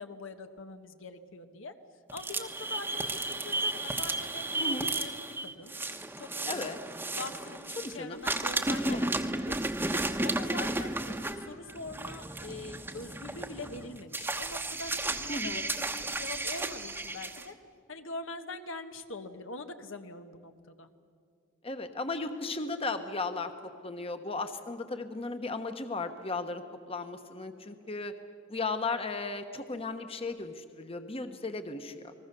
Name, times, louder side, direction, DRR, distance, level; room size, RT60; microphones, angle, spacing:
voice 1, 0.0-1.7 2.1-5.7 6.2-6.7 7.1-9.6 9.9-17.5 17.9-20.9, left 3 dB, 75° left, 7 dB, 1.3 m, -43 dB
sound 1, 2.1-7.9 8.2-17.4, right 2 dB, 10° right, 1.1 m, -33 dB
voice 2, 6.5-6.8 7.8-8.2 8.9-9.1 15.3-15.7 21.6-23.5 23.8-28.1 28.5-32.1, left 3 dB, 30° left, 8 dB, 1.2 m, -35 dB
29.5 x 20.5 x 6.9 m, 2.2 s
head